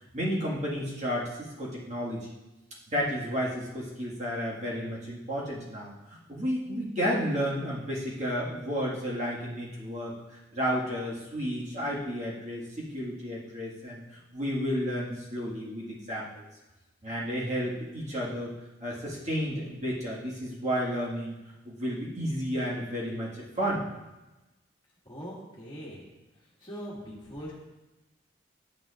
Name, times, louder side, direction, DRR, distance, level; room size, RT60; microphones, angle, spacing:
voice 1, 0.1-2.3 2.9-16.4 17.0-18.5 18.8-21.4 21.6-23.9, equal, 35° right, -6 dB, 1.7 m, -32 dB
voice 2, 25.1-26.0 26.6-27.5, equal, 25° left, -6 dB, 1.8 m, -41 dB
9.3 x 8.8 x 2.5 m, 1.1 s
head